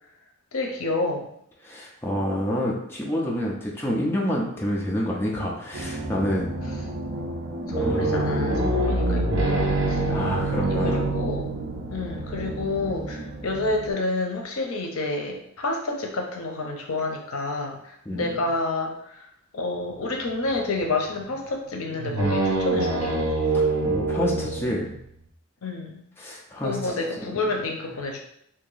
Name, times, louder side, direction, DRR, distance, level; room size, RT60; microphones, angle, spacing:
voice 1, 0.5-1.3 7.7-10.0 10.6-11.5 11.9-19.3 19.5-23.1 25.6-26.0 26.6-28.2, left 2 dB, 80° left, 2 dB, 0.7 m, -29 dB
voice 2, 1.6-6.5 7.8-8.4 10.1-11.1 18.1-18.3 23.5-24.9 26.2-26.9, equal, 10° left, -3 dB, 0.5 m, -28 dB
sound 1, 5.7-13.9, right 2 dB, 45° right, 0.5 m, -34 dB
sound 2, 7.7-12.7 20.2-20.9 21.2-21.3 21.8-25.2, right 2 dB, 75° right, 0.9 m, -25 dB
2.9 x 2.7 x 3.9 m, 0.73 s
head